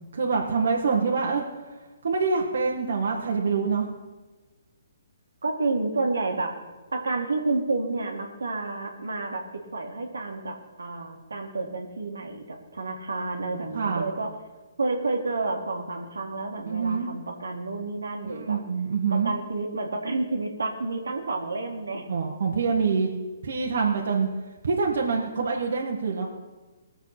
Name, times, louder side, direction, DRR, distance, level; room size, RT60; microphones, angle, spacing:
voice 1, 0.1-1.4 2.0-3.9 13.7-14.1 16.7-17.1 18.2-19.3 22.1-23.1 23.4-24.3 24.6-26.3, right 5 dB, 65° right, -1 dB, 1.6 m, -25 dB
voice 2, 5.4-6.6 6.9-14.3 14.8-18.6 19.1-22.1, right 3 dB, 85° right, 2 dB, 1.9 m, -30 dB
18.5 x 7.0 x 5.9 m, 1.2 s
hypercardioid pair, 140°, 0 cm